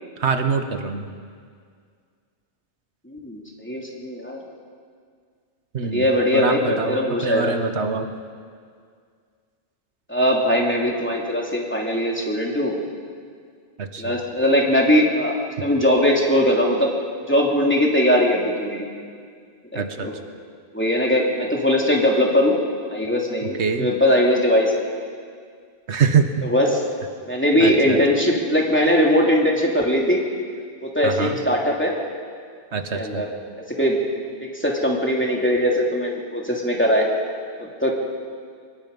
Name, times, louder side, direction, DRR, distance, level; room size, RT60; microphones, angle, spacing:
voice 1, 0.2-1.1 5.7-6.1 6.3-8.1 13.8-14.2 19.7-20.1 23.6-23.9 25.9-26.5 27.6-28.0 31.0-31.4 32.7-33.2, right 5 dB, 85° right, 7 dB, 1.5 m, -24 dB
voice 2, 3.1-4.4 5.9-7.5 10.1-12.8 14.0-15.3 15.6-16.9 17.3-18.9 19.7-20.1 20.7-22.5 22.9-24.7 26.4-26.8 27.3-30.2 30.8-31.9 32.9-33.3 33.8-34.0 34.4-37.1 37.6-38.0, equal, 10° left, -2 dB, 2.9 m, -20 dB
24.5 x 20.5 x 5.4 m, 2.1 s
omnidirectional pair, 1.1 m